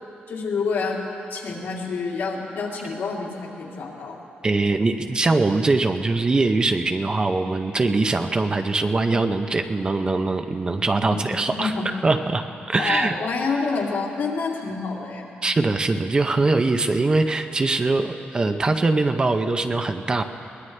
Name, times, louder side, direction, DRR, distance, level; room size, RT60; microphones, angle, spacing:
voice 1, 0.3-1.0 1.3-4.2 11.1-11.2 11.6-11.9 12.8-15.4, left 4 dB, 75° left, -3 dB, 2.6 m, -28 dB
voice 2, 4.4-11.7 12.0-13.2 15.4-20.2, right 3 dB, 25° right, 7 dB, 0.6 m, -22 dB
22.5 x 19.5 x 3.3 m, 2.8 s
wide cardioid pair, 160°, 4 cm